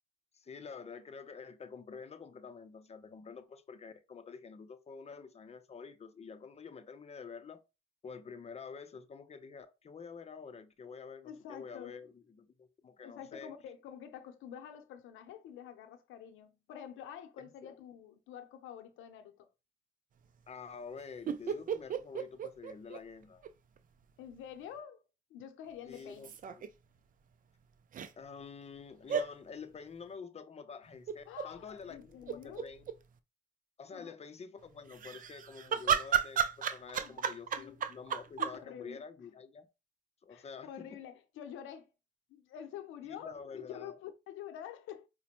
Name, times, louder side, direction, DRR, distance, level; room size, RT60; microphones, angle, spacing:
voice 1, 0.3-7.6 8.0-13.5 17.6-17.8 20.5-23.5 25.9-26.7 28.2-32.8 33.8-39.7 40.2-40.9 43.1-44.0, left 5 dB, 35° left, 0.6 m, -48 dB
voice 2, 11.2-12.0 13.0-19.5 24.2-25.0 25.3-26.3 31.3-32.7 33.9-34.2 37.0-37.8 38.4-39.0 40.3-41.9 42.3-45.1, left 9 dB, 90° left, 0.6 m, -48 dB
sound 1, 21.3-23.5 23.8-23.9 25.9-26.7 27.9-28.1 29.1-29.3 31.1-31.5 31.9-32.9 34.9-38.6, right 8 dB, 45° right, 0.4 m, -33 dB
5.0 x 2.1 x 2.9 m
cardioid pair, 90°, 20 cm